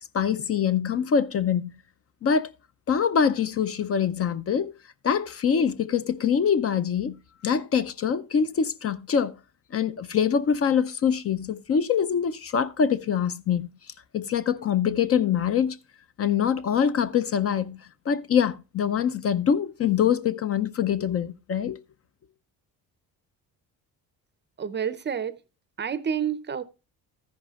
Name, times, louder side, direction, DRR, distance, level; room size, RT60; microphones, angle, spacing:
voice 1, 0.1-1.7 2.2-2.5 2.9-4.7 5.0-9.3 9.7-13.7 14.1-15.8 16.2-17.8 18.1-21.8, left 7 dB, 40° left, 0.5 m, -24 dB
voice 2, 24.6-25.3 25.8-26.6, right 8 dB, 30° right, 0.5 m, -29 dB
13.5 x 10.5 x 2.3 m
cardioid pair, 155°, 37 cm